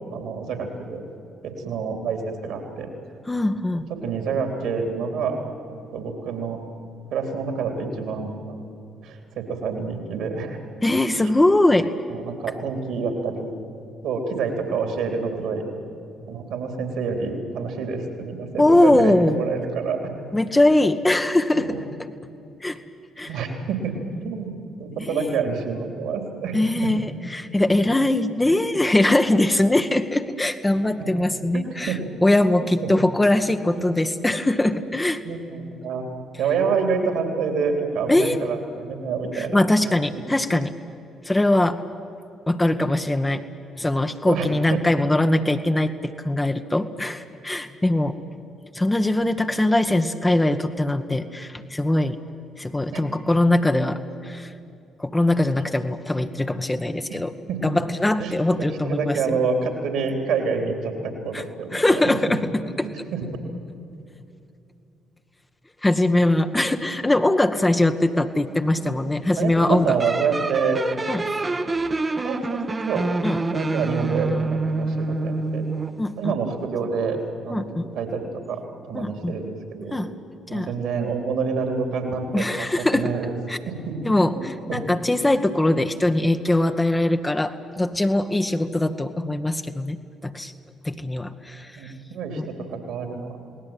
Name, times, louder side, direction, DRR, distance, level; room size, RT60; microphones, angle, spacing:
voice 1, 0.1-1.0 1.4-2.9 3.9-5.4 5.7-6.6 7.1-8.6 9.0-10.6 12.1-13.5 14.0-15.6 16.3-20.1 21.5-21.8 23.3-23.9 24.2-24.5 24.8-26.9 31.5-32.0 32.6-32.9 33.7-33.9 35.2-36.0 36.4-40.2 44.3-44.5 48.0-48.2 52.9-53.0 57.5-57.7 58.2-62.1 62.8-63.3 68.5-68.9 69.4-70.8 72.2-73.1 73.4-75.7 76.2-77.2 77.4-77.6 77.9-78.6 78.9-80.0 80.5-83.3 83.7-84.0 84.3-84.8 91.7-93.4, right 5 dB, 65° right, 4 dB, 3.9 m, -28 dB
voice 2, 3.3-3.9 10.8-11.9 18.6-19.4 20.3-22.1 22.6-22.8 23.2-23.5 25.0-25.4 26.5-35.2 38.1-38.4 39.3-40.7 41.2-41.8 42.5-43.4 43.8-48.2 48.7-52.2 52.6-54.5 55.0-57.3 57.6-59.2 61.3-61.4 61.7-62.9 65.8-69.9 71.1-71.3 73.2-73.4 76.0-76.3 77.5-77.9 78.9-79.4 79.9-80.1 80.5-80.7 82.3-83.1 83.5-83.6 84.0-90.0 90.2-90.5 90.8-91.7 92.4-92.5, left 1 dB, 15° left, 7 dB, 1.4 m, -21 dB
sound 1, 70.0-76.0, right 3 dB, 30° right, 1.4 m, -26 dB
30.0 x 19.0 x 9.1 m, 2.6 s
figure-of-eight pair, 45°, 0 cm